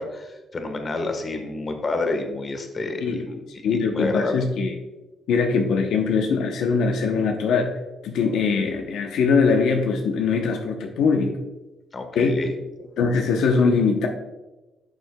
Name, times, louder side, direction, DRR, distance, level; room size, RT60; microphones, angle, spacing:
voice 1, 0.0-4.4 11.9-12.5, left 2 dB, 40° left, 5 dB, 1.3 m, -29 dB
voice 2, 3.6-4.7 5.3-7.8 8.0-11.4 12.1-12.4 13.0-14.1, left 5 dB, 80° left, 3 dB, 0.8 m, -21 dB
11.5 x 6.3 x 2.2 m, 1.1 s
cardioid pair, 90°, 0 cm